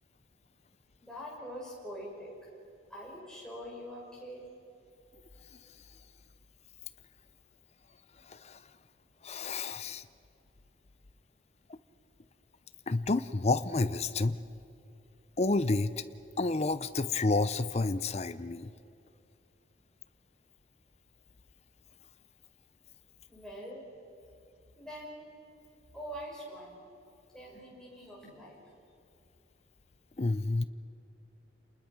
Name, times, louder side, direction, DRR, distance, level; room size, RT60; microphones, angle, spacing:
voice 1, 1.0-2.3 2.9-4.4 23.3-23.8 24.8-25.2 25.9-26.8 27.3-28.6, equal, 5° left, -4 dB, 6.0 m, -44 dB
voice 2, 8.3-8.6 9.2-10.0 12.9-14.4 15.4-16.0 16.4-18.7 30.2-30.6, left 3 dB, 35° left, 12 dB, 0.6 m, -29 dB
28.0 x 20.5 x 6.0 m, 2.6 s
head